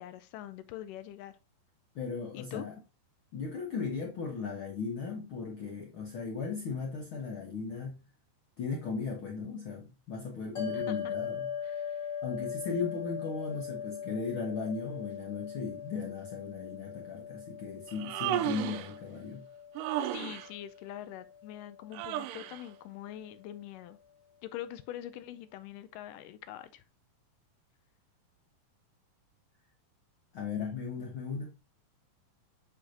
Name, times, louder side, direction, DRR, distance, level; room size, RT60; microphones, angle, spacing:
voice 1, 0.0-1.4 2.3-2.7 10.7-11.1 11.6-12.1 20.1-24.0 24.4-26.8, left 12 dB, 80° left, 2.0 m, -44 dB
voice 2, 1.9-2.8 3.3-8.0 8.6-11.8 12.2-19.5 30.3-31.5, left 5 dB, 65° left, 1.3 m, -37 dB
sound 1, 10.6-23.0, left 8 dB, 35° left, 1.7 m, -41 dB
Human voice, 17.9-18.9 19.8-20.5 21.9-22.6, right 12 dB, 80° right, 2.1 m, -34 dB
7.9 x 5.8 x 2.5 m
omnidirectional pair, 4.1 m